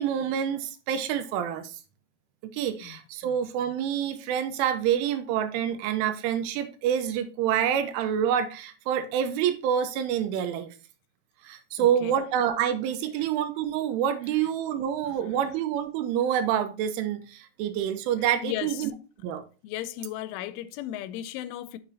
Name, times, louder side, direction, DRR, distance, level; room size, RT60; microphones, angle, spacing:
voice 1, 0.0-1.8 2.5-10.7 11.4-18.9 19.2-19.4, right 9 dB, 85° right, 3.4 m, -27 dB
voice 2, 2.8-3.4 11.8-12.1 15.0-15.1 18.4-18.9 19.6-21.8, left 13 dB, 85° left, 3.0 m, -36 dB
7.9 x 7.2 x 2.7 m
omnidirectional pair, 5.5 m